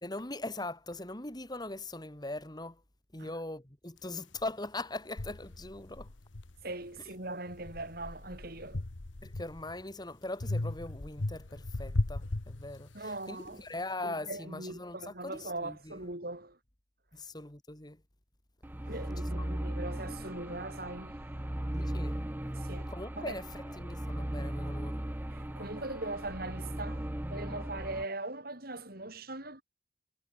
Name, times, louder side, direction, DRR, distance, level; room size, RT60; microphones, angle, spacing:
voice 1, 0.0-2.8 3.1-6.1 9.2-16.0 17.1-18.0 19.4-19.5 21.7-22.2 22.9-23.5 23.7-25.0, left 2 dB, 20° left, 2.6 m, -41 dB
sound 1, 4.4-4.5 5.2-7.0 7.5-9.8 10.4-13.2, left 2 dB, 75° left, 1.3 m, -37 dB
voice 2, 6.6-8.8 12.9-13.6 14.0-16.6 18.8-21.2 22.6-23.4 25.3-29.6, right 2 dB, 50° right, 6.7 m, -41 dB
sound 2, 18.6-28.0, right 1 dB, 10° right, 0.6 m, -37 dB
head